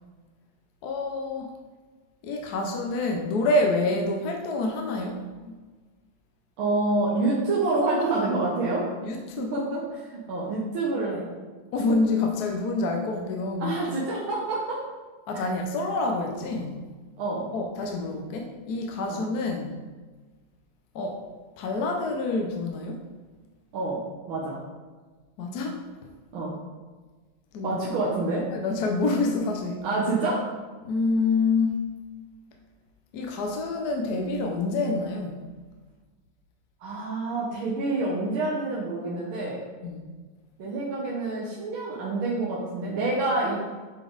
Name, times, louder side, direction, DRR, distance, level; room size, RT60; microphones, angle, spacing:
voice 1, 0.8-1.5 2.2-5.2 5.5-5.6 9.0-9.7 11.7-13.7 15.3-16.9 17.5-19.8 20.9-21.2 21.6-23.0 25.4-25.8 27.5-27.8 28.5-29.8 30.8-31.8 33.1-35.5 39.8-40.0, left 3 dB, 65° left, 2 dB, 1.1 m, -27 dB
voice 2, 6.6-8.8 9.5-11.3 13.6-14.8 15.3-15.4 17.2-17.5 19.1-19.2 23.7-24.0 24.3-24.6 26.3-26.5 27.6-28.5 29.8-30.4 36.8-39.6 40.6-43.6, right 2 dB, 90° right, -5 dB, 1.9 m, -27 dB
8.1 x 3.9 x 3.9 m, 1.4 s
omnidirectional pair, 2.2 m